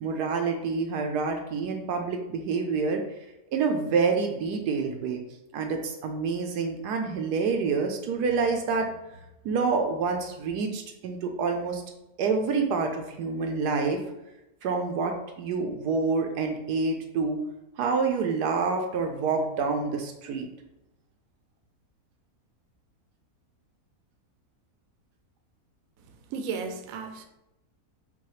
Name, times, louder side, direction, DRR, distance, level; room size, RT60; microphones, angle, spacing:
voice 1, 0.0-3.0 3.5-5.2 5.5-8.9 9.4-11.8 12.2-14.0 14.6-17.4 17.8-20.5, right 4 dB, 90° right, 3 dB, 1.2 m, -27 dB
voice 2, 26.3-27.3, right 5 dB, 70° right, 5 dB, 0.9 m, -34 dB
5.6 x 2.2 x 3.1 m, 0.91 s
omnidirectional pair, 1.7 m